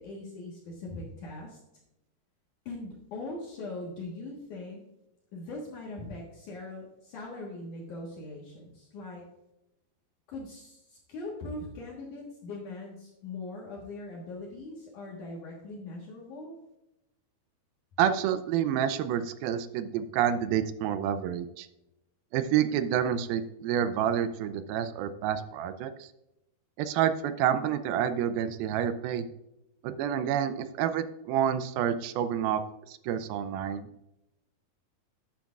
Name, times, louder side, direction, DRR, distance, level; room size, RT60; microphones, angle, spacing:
voice 1, 0.0-1.6 2.7-4.8 5.3-9.2 10.3-16.6, left 2 dB, 60° left, -3 dB, 2.5 m, -41 dB
voice 2, 18.0-21.7 22.3-26.1 26.8-29.3 29.8-32.6 32.9-33.9, right 9 dB, 80° right, 11 dB, 2.3 m, -28 dB
12.0 x 9.1 x 2.4 m, 0.89 s
omnidirectional pair, 4.5 m